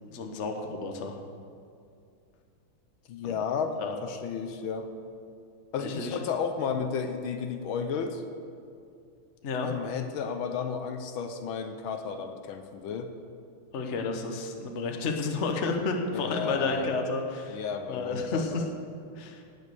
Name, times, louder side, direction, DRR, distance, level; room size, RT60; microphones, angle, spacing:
voice 1, 0.1-1.1 3.2-3.3 3.8-3.9 5.8-6.2 9.4-9.7 13.7-17.6 17.9-18.6 19.2-19.4, left 3 dB, 45° left, 3 dB, 1.1 m, -31 dB
voice 2, 3.1-4.9 5.7-8.2 9.6-13.1 16.1-16.9 17.5-18.6, left 6 dB, 75° left, 7 dB, 1.6 m, -33 dB
18.0 x 6.4 x 6.8 m, 2.4 s
omnidirectional pair, 2.3 m